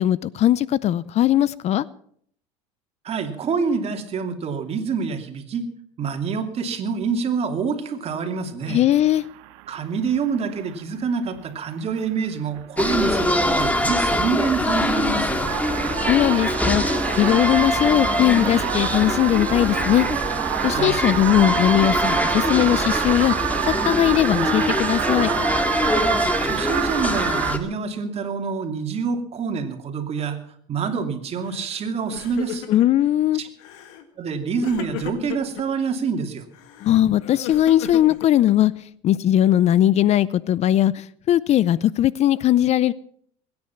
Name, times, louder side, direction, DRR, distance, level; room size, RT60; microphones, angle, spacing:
voice 1, 0.0-1.9 8.7-9.2 16.0-20.1 20.6-23.3 23.8-25.3 32.7-33.4 36.8-38.7 39.0-42.9, left 12 dB, 45° left, 0.5 m, -19 dB
voice 2, 3.0-5.6 6.0-8.8 9.7-15.5 20.7-21.0 26.4-30.4 30.7-32.7 33.3-33.5 34.2-36.4, right 5 dB, 40° right, 2.7 m, -26 dB
sound 1, 8.8-9.7 10.0-10.8 11.4-11.5 11.8-12.1 12.4-27.5, right 18 dB, 80° right, 0.8 m, -28 dB
sound 2, 12.8-27.6, left 1 dB, 10° left, 2.0 m, -24 dB
Crying sobbing, 31.5-31.8 32.1-33.1 33.6-34.1 34.6-35.6 36.5-38.8, left 11 dB, 80° left, 1.8 m, -36 dB
21.5 x 9.7 x 5.8 m
supercardioid pair, 95°, 15 cm